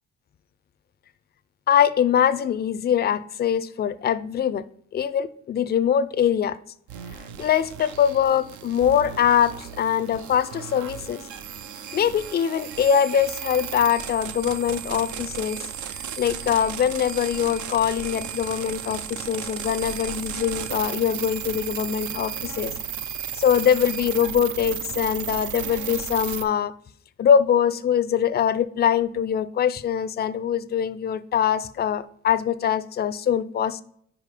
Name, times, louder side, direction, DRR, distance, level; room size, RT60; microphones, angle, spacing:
voice 1, 1.7-4.6 4.9-6.6 7.4-11.2 11.9-15.6 16.2-22.7 23.3-26.7 27.2-33.8, left 8 dB, 35° left, 0.4 m, -23 dB
sound 1, 6.9-26.4, right 8 dB, 75° right, 0.6 m, -34 dB
5.0 x 4.9 x 5.0 m
cardioid pair, 90°, 30 cm